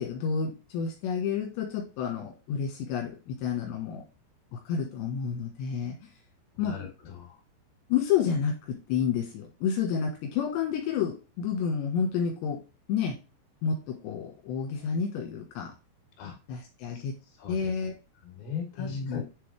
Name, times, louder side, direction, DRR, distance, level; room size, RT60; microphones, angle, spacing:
voice 1, 0.0-4.0 4.5-6.1 6.6-6.7 7.9-12.6 12.9-13.2 13.6-15.7 16.5-17.1 17.5-17.9 18.8-19.2, left 7 dB, 85° left, 0 dB, 3.6 m, -30 dB
voice 2, 6.5-7.4 16.2-16.3 16.9-17.0 17.4-17.7 18.2-19.2, left 8 dB, 60° left, 0 dB, 4.1 m, -39 dB
9.4 x 3.8 x 3.4 m, 0.30 s
omnidirectional pair, 4.9 m